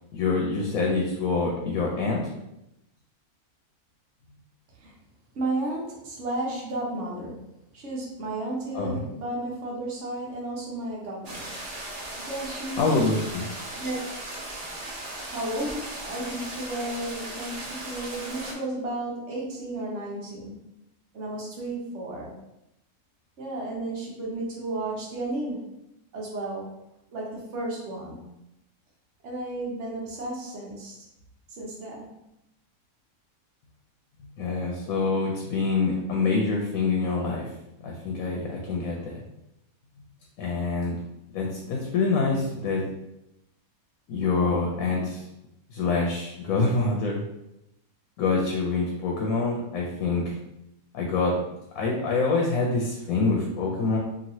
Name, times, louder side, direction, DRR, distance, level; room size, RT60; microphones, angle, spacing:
voice 1, 0.1-2.3 8.7-9.0 12.8-13.5 34.4-37.5 37.8-39.2 40.4-41.0 41.3-42.8 44.1-45.3 45.7-47.2 48.2-50.4 50.9-51.4 51.7-54.0, left 3 dB, 75° left, -1 dB, 1.0 m, -26 dB
voice 2, 5.3-7.4 7.7-11.5 12.3-13.0 13.7-14.0 15.3-20.6 21.1-22.3 23.4-25.8 26.1-26.7 27.1-28.2 29.2-31.0 31.6-32.1, right 2 dB, 60° right, -3 dB, 1.1 m, -33 dB
sound 1, 11.2-18.5, right 1 dB, 85° right, 0.3 m, -37 dB
3.0 x 2.7 x 2.6 m, 0.86 s
omnidirectional pair, 1.5 m